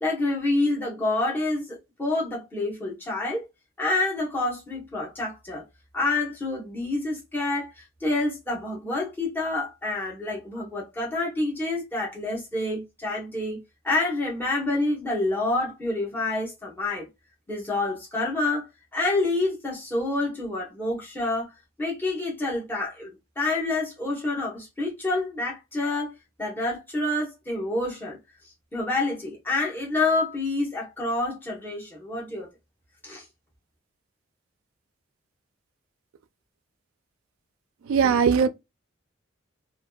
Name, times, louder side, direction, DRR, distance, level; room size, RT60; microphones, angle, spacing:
voice 1, 0.0-3.5 3.8-5.6 5.9-17.1 17.5-21.5 21.8-28.2 28.7-32.5 33.0-33.2, left 2 dB, 10° left, 0.8 m, -28 dB
voice 2, 37.9-38.5, right 6 dB, 85° right, 0.3 m, -19 dB
2.5 x 2.4 x 2.2 m
head